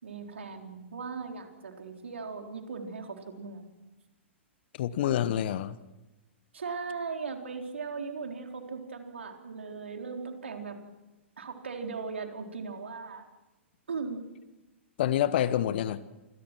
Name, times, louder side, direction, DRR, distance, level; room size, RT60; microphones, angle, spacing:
voice 1, 0.0-3.7 6.5-10.8 11.4-13.3 13.9-14.3, right 4 dB, 70° right, 3.8 m, -38 dB
voice 2, 4.7-5.7 15.0-16.0, left 11 dB, 50° left, 1.1 m, -27 dB
28.0 x 22.0 x 6.1 m
figure-of-eight pair, 110°, 7 cm